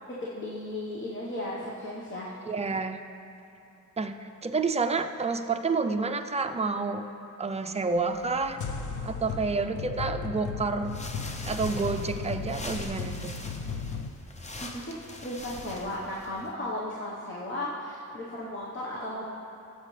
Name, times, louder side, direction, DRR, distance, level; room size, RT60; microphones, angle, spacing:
voice 1, 0.1-2.3 14.6-14.9 15.2-19.3, left 1 dB, 40° left, -5 dB, 1.2 m, -35 dB
voice 2, 2.5-3.0 4.0-7.0 7.4-8.6 9.0-11.0 11.5-13.3, right 4 dB, 20° right, 6 dB, 0.4 m, -29 dB
sound 1, 8.0-14.1, left 5 dB, 70° left, 0.7 m, -36 dB
sound 2, 10.8-16.5, left 1 dB, 20° left, 0.7 m, -42 dB
18.0 x 8.3 x 3.3 m, 2.9 s
wide cardioid pair, 150°, 31 cm